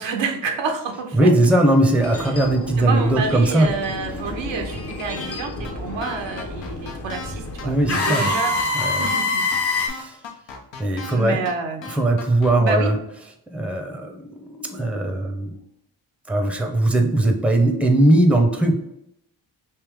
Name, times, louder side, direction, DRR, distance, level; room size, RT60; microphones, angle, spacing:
voice 1, 0.0-1.3 2.8-8.5 8.8-9.9 11.1-11.9 12.6-12.9, right 4 dB, 75° right, 4 dB, 0.8 m, -28 dB
voice 2, 1.1-3.7 7.6-8.3 8.7-9.1 9.8-10.2 10.8-11.4 11.9-13.0 13.5-15.6 16.3-18.8, right 1 dB, 5° right, 3 dB, 0.7 m, -19 dB
sound 1, 2.0-9.9, left 3 dB, 30° left, 0.9 m, -27 dB
sound 2, 5.2-5.4 5.6-5.7 6.0-7.3 7.6-7.7 7.9-9.2 9.5-9.6 9.9-11.2 11.5-11.6 11.8-12.8, left 4 dB, 70° left, 0.9 m, -36 dB
3.3 x 2.8 x 3.5 m, 0.80 s
supercardioid pair, 55°, 45 cm